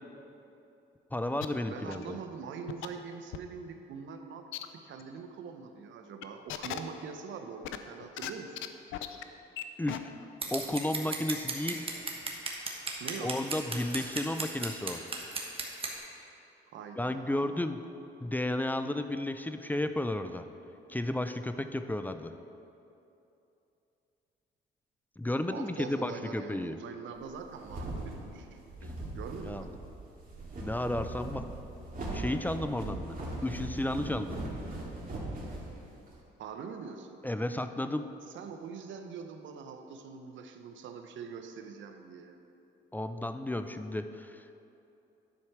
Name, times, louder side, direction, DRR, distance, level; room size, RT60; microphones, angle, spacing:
voice 1, 1.1-2.2 9.8-10.1 10.5-11.9 13.2-15.0 17.0-17.8 18.2-20.5 20.9-22.3 25.2-26.8 29.4-29.7 30.6-31.4 32.1-33.2 33.4-34.4 37.2-38.1 42.9-44.4, left 1 dB, 10° left, 9 dB, 0.4 m, -33 dB
sound 1, 1.4-1.5 1.9-2.1 2.7-2.9 3.3-3.4 4.5-4.7 5.0-5.1 6.2-6.8 7.6-8.3 8.6-8.7 8.9-9.2 9.6-9.7 9.9-10.0, left 13 dB, 90° left, 0.5 m, -37 dB
voice 2, 1.7-4.4 4.7-8.7 13.0-13.3 16.7-17.7 25.5-29.7 36.4-37.2 38.3-42.4, right 6 dB, 75° right, 6 dB, 0.8 m, -43 dB
Scissors, 10.4-15.9, right 3 dB, 30° right, 1.2 m, -36 dB
sound 2, 27.3-36.2, right 1 dB, 45° right, 2.2 m, -39 dB
11.0 x 4.7 x 5.8 m, 2.8 s
cardioid pair, 90°, 20 cm